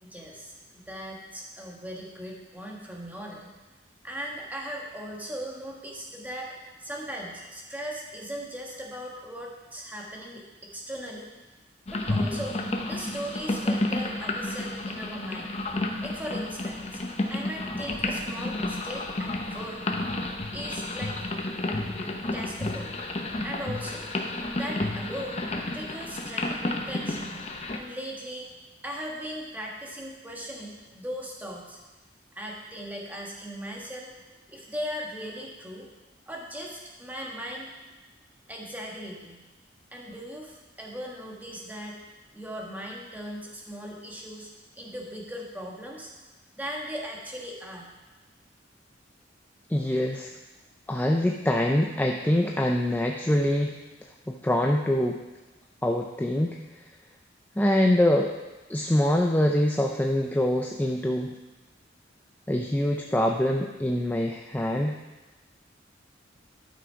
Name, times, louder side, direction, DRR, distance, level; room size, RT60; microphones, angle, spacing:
voice 1, 0.0-3.5 4.0-6.5 6.8-10.4 10.7-11.3 11.9-12.6 12.9-15.5 16.0-17.0 17.3-19.8 20.5-21.2 22.3-22.9 23.4-24.0 24.5-25.5 25.7-27.3 27.7-31.8 32.3-34.2 34.5-35.9 36.3-37.7 38.5-39.4 39.9-42.0 42.3-44.5 44.7-46.1 46.5-47.9, equal, 10° right, -2 dB, 1.4 m, -38 dB
sound 1, 11.9-27.8, left 2 dB, 35° left, 0.8 m, -31 dB
voice 2, 49.7-50.3 50.9-53.8 54.3-55.2 55.8-56.6 57.6-58.3 58.7-61.3 62.5-65.0, left 1 dB, 10° left, 2 dB, 0.4 m, -24 dB
11.5 x 6.2 x 4.6 m, 1.1 s
head